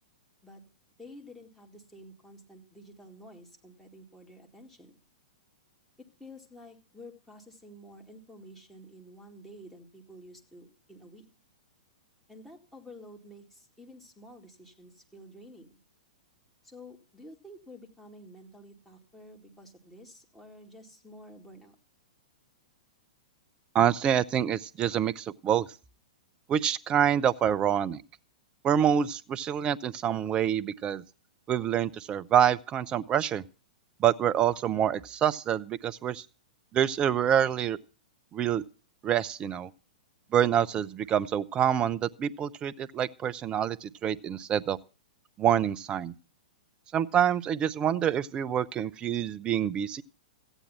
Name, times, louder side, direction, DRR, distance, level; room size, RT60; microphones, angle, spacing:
voice 1, 1.0-5.0 6.0-11.3 12.3-15.7 16.6-21.8, equal, 5° left, 1 dB, 2.2 m, -50 dB
voice 2, 23.7-25.7 26.5-28.0 28.6-31.0 31.5-33.4 34.0-36.2 36.7-37.8 38.3-38.6 39.0-39.7 40.3-44.8 45.4-46.1 46.9-50.0, right 9 dB, 25° right, 18 dB, 0.5 m, -26 dB
14.5 x 9.0 x 5.6 m, 0.37 s
figure-of-eight pair, 105°, 4 cm